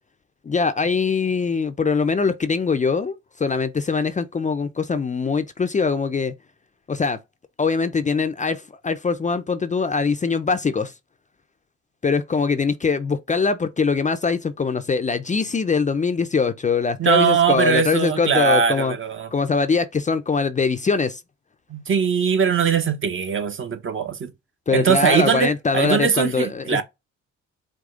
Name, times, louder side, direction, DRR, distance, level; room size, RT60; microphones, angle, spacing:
voice 1, 0.4-6.3 6.9-7.2 7.6-10.9 12.0-19.0 19.3-21.2 24.7-26.8, left 4 dB, 25° left, 0.5 m, -22 dB
voice 2, 17.0-19.3 21.7-24.3 24.7-26.8, right 7 dB, 40° right, 1.0 m, -21 dB
4.9 x 2.3 x 3.7 m
cardioid pair, 90°, 30 cm